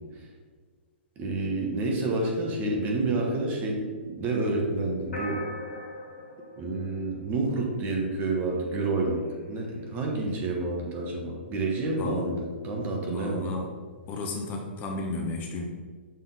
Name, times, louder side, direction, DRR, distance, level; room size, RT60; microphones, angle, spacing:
voice 1, 1.2-5.4 6.6-9.2 9.5-13.6, right 2 dB, 25° right, 0 dB, 1.2 m, -29 dB
sound 1, 5.1-7.7, left 2 dB, 85° left, 1.5 m, -39 dB
voice 2, 11.9-12.3 13.0-13.7 14.1-15.6, left 2 dB, 25° left, 0 dB, 0.8 m, -33 dB
6.5 x 3.7 x 4.1 m, 1.5 s
hypercardioid pair, 135°, 6 cm